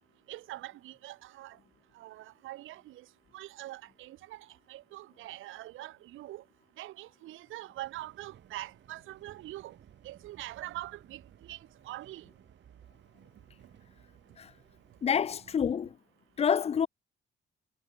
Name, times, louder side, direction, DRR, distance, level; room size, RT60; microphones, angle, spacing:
voice 1, 0.3-1.6 1.9-3.0 3.3-6.4 6.8-9.8 10.0-12.3, right 16 dB, 90° right, 1.6 m, -44 dB
sound 1, 7.7-15.8, right 10 dB, 65° right, 5.1 m, -58 dB
voice 2, 15.0-15.9 16.4-16.9, left 7 dB, 30° left, 0.4 m, -27 dB
cardioid pair, 90°, 20 cm